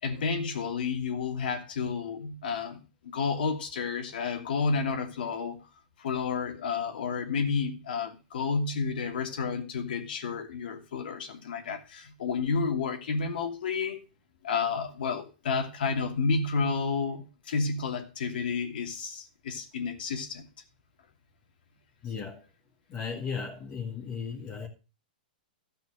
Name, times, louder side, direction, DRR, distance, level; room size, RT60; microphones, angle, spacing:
voice 1, 0.0-5.7 6.0-14.0 14.4-20.5, left 5 dB, 75° left, 2.7 m, -31 dB
voice 2, 22.0-22.4 22.9-24.7, left 6 dB, 30° left, 2.1 m, -36 dB
13.5 x 5.6 x 6.4 m
hypercardioid pair, 135°, 5 cm